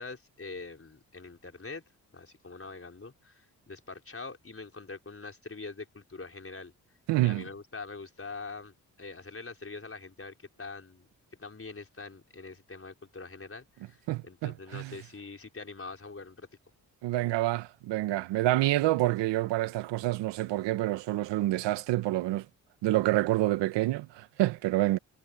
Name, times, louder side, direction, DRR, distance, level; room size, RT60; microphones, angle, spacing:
voice 1, 0.0-1.8 2.1-6.7 7.2-16.5, left 3 dB, 30° left, 4.7 m, -44 dB
voice 2, 7.1-7.4 14.1-15.0 17.0-22.4 22.8-25.0, right 16 dB, 85° right, 1.1 m, -27 dB
hypercardioid pair, 40°, 42 cm